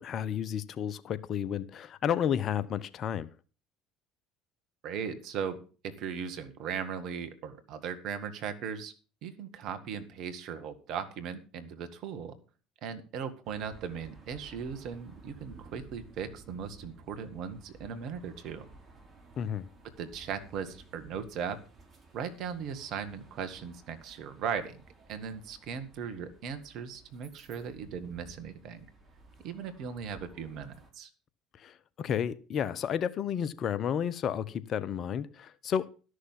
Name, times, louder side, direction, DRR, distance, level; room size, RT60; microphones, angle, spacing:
voice 1, 0.0-3.3 19.4-19.7 31.6-35.9, left 8 dB, 45° left, 0.9 m, -32 dB
voice 2, 4.8-8.9 9.2-12.3 12.8-18.7 20.0-21.6 22.1-24.8 25.1-28.9 29.4-31.1, right 7 dB, 55° right, 1.9 m, -38 dB
sound 1, 13.4-30.9, right 3 dB, 30° right, 5.5 m, -55 dB
12.5 x 6.6 x 7.4 m
hypercardioid pair, 60°, 0 cm